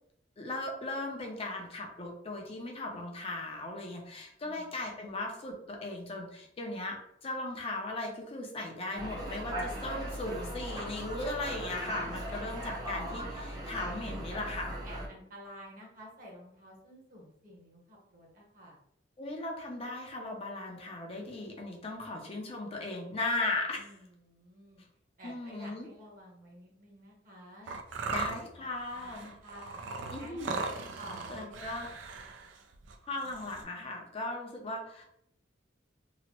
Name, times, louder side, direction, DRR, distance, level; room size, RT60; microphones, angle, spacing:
voice 1, 0.4-14.7 19.2-23.9 25.2-25.9 28.1-29.3 30.1-30.5 31.3-31.9 33.1-35.0, left 2 dB, 30° left, 1 dB, 0.5 m, -37 dB
voice 2, 4.4-4.8 14.0-14.6 14.8-18.8 23.8-24.8 25.2-27.7 28.1-28.7 28.9-29.8 30.2-31.7 32.2-32.3 33.1-33.3, equal, 50° right, -2 dB, 0.9 m, -52 dB
sound 1, 8.9-15.1, right 1 dB, 20° right, 0.5 m, -38 dB
sound 2, 27.7-33.6, right 4 dB, 90° right, 0.4 m, -39 dB
2.9 x 2.1 x 2.8 m, 0.72 s
head